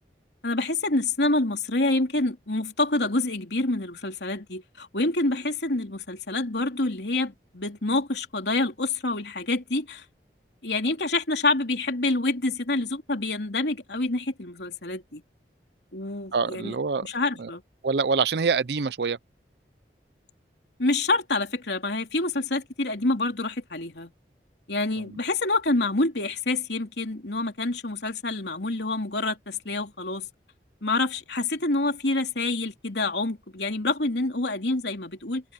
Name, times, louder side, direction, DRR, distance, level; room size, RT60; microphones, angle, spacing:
voice 1, 0.4-10.0 10.6-15.2 15.9-16.7 17.0-17.6 20.8-24.1 24.7-30.3 30.8-35.4, left 2 dB, 80° left, 3.1 m, -27 dB
voice 2, 16.3-17.1 17.4-17.5 17.8-19.2 25.1-25.2, right 5 dB, 75° right, 0.5 m, -25 dB
open air
head